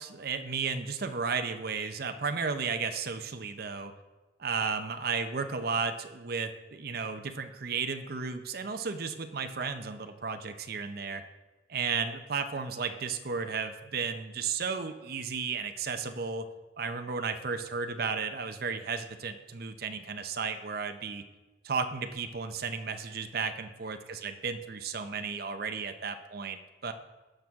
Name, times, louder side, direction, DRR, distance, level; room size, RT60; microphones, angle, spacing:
voice 1, 0.0-3.9 4.4-11.2 11.7-16.5 16.8-21.2 21.6-26.9, right 5 dB, 55° right, 8 dB, 0.7 m, -34 dB
17.0 x 6.1 x 3.6 m, 1.2 s
head